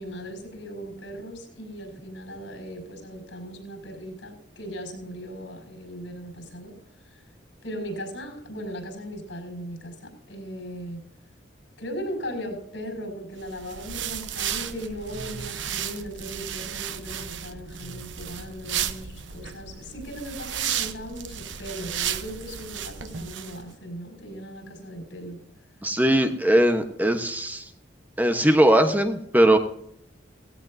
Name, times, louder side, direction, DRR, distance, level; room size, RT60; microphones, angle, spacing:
voice 1, 0.0-6.7 7.6-11.0 11.8-25.4, equal, 85° left, 4 dB, 6.0 m, -38 dB
sound 1, 13.4-23.6, right 9 dB, 85° right, 0.9 m, -33 dB
voice 2, 25.8-27.6 28.2-29.6, right 1 dB, 10° right, 6 dB, 1.0 m, -20 dB
17.0 x 16.5 x 2.7 m, 0.73 s
head